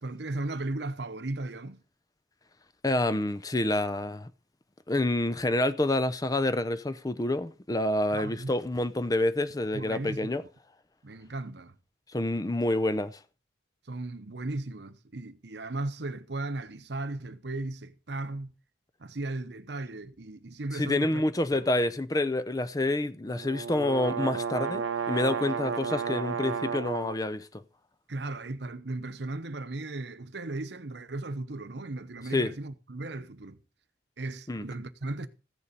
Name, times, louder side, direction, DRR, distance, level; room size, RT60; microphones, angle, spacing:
voice 1, 0.0-1.8 8.1-8.5 9.7-10.3 11.0-11.8 13.9-18.5 19.0-21.2 21.5-21.7 28.1-33.6 34.2-35.3, right 2 dB, 60° right, 0.9 m, -36 dB
voice 2, 2.8-4.3 4.9-10.4 12.1-13.2 20.7-27.6 32.3-32.5 34.5-34.6, left 1 dB, 20° left, 0.5 m, -28 dB
sound 1, 23.3-27.2, right 6 dB, 90° right, 0.8 m, -32 dB
15.0 x 7.0 x 5.2 m
head